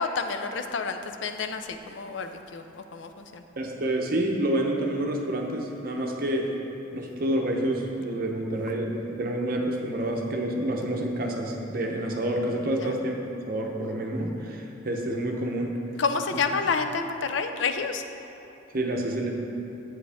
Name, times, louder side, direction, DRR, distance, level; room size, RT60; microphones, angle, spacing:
voice 1, 0.0-3.4 12.8-12.9 16.0-18.0, left 4 dB, 75° left, 7 dB, 0.5 m, -29 dB
voice 2, 3.6-6.5 6.9-13.2 13.5-15.7 16.3-16.4 18.7-19.3, right 1 dB, 50° right, 1 dB, 0.8 m, -28 dB
7.6 x 7.3 x 3.5 m, 3.0 s
head